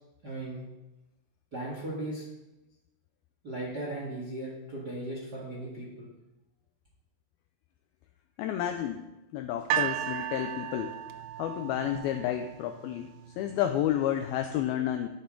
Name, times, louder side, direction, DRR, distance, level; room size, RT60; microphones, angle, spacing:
voice 1, 0.2-0.6 1.5-2.2 3.4-6.1, right 1 dB, 50° right, -4 dB, 1.2 m, -37 dB
voice 2, 8.4-9.1 9.3-11.0 11.4-15.1, left 11 dB, 85° left, 6 dB, 2.1 m, -31 dB
sound 1, 9.7-12.9 13.7-13.8, right 11 dB, 85° right, 2.8 m, -34 dB
11.5 x 8.4 x 3.8 m, 1.0 s
omnidirectional pair, 4.9 m